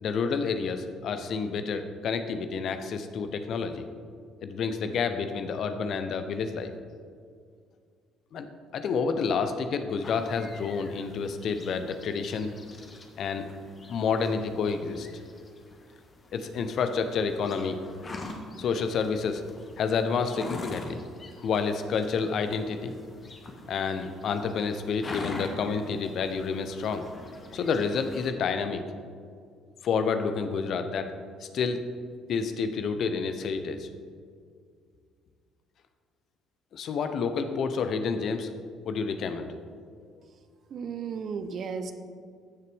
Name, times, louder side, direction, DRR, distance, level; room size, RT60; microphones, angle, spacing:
voice 1, 0.0-3.9 4.4-6.7 8.3-8.5 8.7-12.5 13.2-13.5 13.9-15.1 16.3-17.8 18.6-19.4 19.8-21.0 21.4-22.9 23.7-27.1 27.5-28.8 29.8-31.1 31.4-31.8 32.3-33.9 36.7-38.5 38.8-39.6, left 5 dB, 55° left, 9 dB, 0.7 m, -29 dB
sound 1, 10.0-28.3, left 2 dB, 35° left, 1.4 m, -45 dB
voice 2, 40.7-41.9, right 6 dB, 50° right, 9 dB, 0.7 m, -34 dB
14.0 x 6.7 x 3.5 m, 2.1 s
hypercardioid pair, 50°, 0 cm